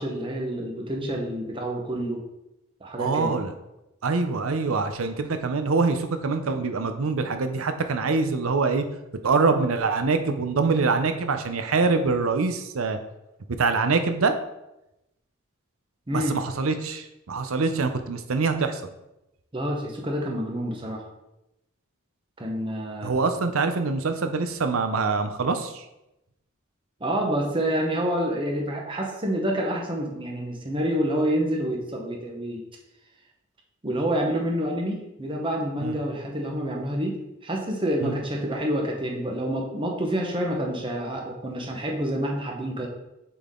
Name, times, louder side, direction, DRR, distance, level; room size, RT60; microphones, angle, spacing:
voice 1, 0.0-2.2 2.8-3.4 16.1-16.4 19.5-21.0 22.4-23.2 27.0-32.6 33.8-42.9, equal, 25° right, 0 dB, 0.9 m, -28 dB
voice 2, 3.0-3.5 4.0-8.8 9.2-13.0 13.5-14.3 16.1-18.8 23.0-25.9 35.8-36.0 38.0-38.2, right 4 dB, 80° right, 8 dB, 0.6 m, -24 dB
6.8 x 3.8 x 3.7 m, 0.91 s
head